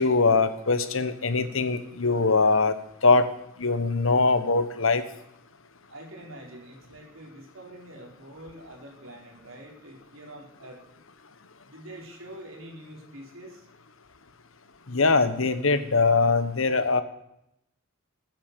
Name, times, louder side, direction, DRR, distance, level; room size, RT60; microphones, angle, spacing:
voice 1, 0.0-2.7 3.0-3.3 3.6-5.0 14.9-17.0, left 3 dB, 70° left, 11 dB, 1.3 m, -22 dB
voice 2, 1.7-2.1 2.4-2.5 5.9-10.8 11.6-13.6, right 1 dB, 75° right, 0 dB, 4.4 m, -45 dB
20.0 x 9.3 x 6.8 m, 0.80 s
head